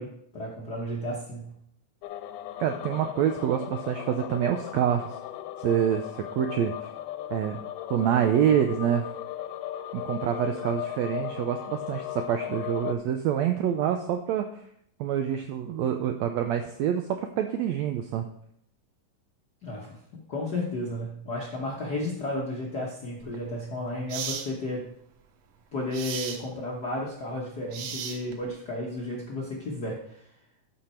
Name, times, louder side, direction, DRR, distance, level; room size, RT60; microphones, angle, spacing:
voice 1, 0.0-1.5 19.6-24.9 25.7-30.2, left 1 dB, 60° left, -3 dB, 1.0 m, -33 dB
sound 1, 2.0-13.0, left 12 dB, 80° left, 2.2 m, -37 dB
voice 2, 2.6-5.1 5.6-6.7 7.3-7.6 7.9-9.1 9.9-14.5 15.0-18.3, right 9 dB, 90° right, 6 dB, 1.5 m, -26 dB
sound 2, 23.2-23.4 24.1-24.5 25.9-26.4 27.7-28.5, right 7 dB, 70° right, 1.6 m, -35 dB
12.5 x 5.8 x 4.4 m, 0.70 s
omnidirectional pair, 3.8 m